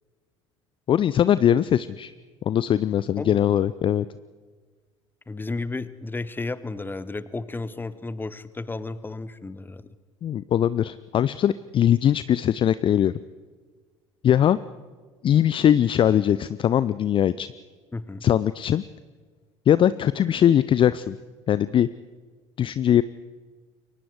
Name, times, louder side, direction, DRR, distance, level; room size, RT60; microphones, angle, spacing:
voice 1, 0.9-2.1 2.5-4.0 10.2-13.1 14.2-14.6 15.2-17.5 18.2-18.8 19.7-21.2 21.5-21.9 22.6-23.0, left 10 dB, 30° left, 16 dB, 0.5 m, -21 dB
voice 2, 3.2-3.5 5.3-9.9 17.9-18.3, left 3 dB, 10° left, 16 dB, 1.1 m, -33 dB
28.5 x 23.5 x 4.8 m, 1.5 s
figure-of-eight pair, 65°, 16 cm